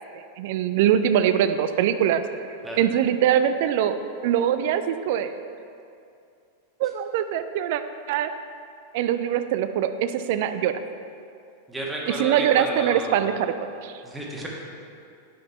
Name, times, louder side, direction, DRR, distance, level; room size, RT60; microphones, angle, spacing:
voice 1, 0.4-2.2 2.8-5.3 6.8-7.8 8.1-8.3 8.9-10.8 12.1-13.5 13.8-13.9, right 10 dB, 50° right, 10 dB, 0.3 m, -23 dB
voice 2, 11.7-13.4 14.0-14.5, right 1 dB, 10° right, -3 dB, 1.3 m, -32 dB
5.5 x 5.3 x 5.5 m, 2.5 s
figure-of-eight pair, 90°, 0 cm